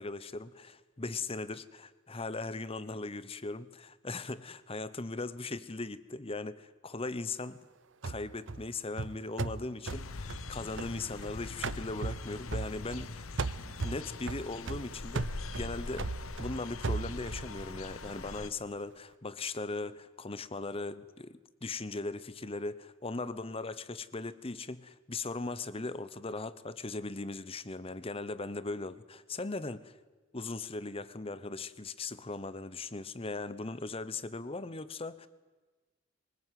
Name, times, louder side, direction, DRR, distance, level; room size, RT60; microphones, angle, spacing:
voice 1, 0.0-7.6 8.0-13.3 13.6-16.1 16.4-29.9 30.3-35.3, left 3 dB, 25° left, 0.9 m, -39 dB
sound 1, 8.0-11.3 11.6-13.1 13.4-17.5, right 3 dB, 60° right, 0.7 m, -37 dB
sound 2, 9.9-18.5, left 3 dB, 75° left, 1.0 m, -43 dB
23.0 x 20.5 x 9.3 m
head